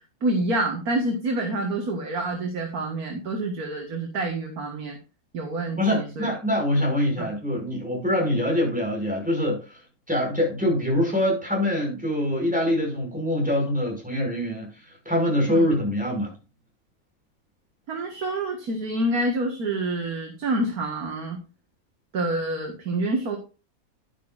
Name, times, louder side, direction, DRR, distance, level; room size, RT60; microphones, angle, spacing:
voice 1, 0.2-5.0 5.3-6.3 7.2-7.3 15.5-15.6 17.9-21.4 22.1-23.4, right 2 dB, 85° right, 2.2 m, -27 dB
voice 2, 5.8-16.3, left 1 dB, 5° right, 5.8 m, -24 dB
11.5 x 11.0 x 2.5 m
omnidirectional pair, 1.5 m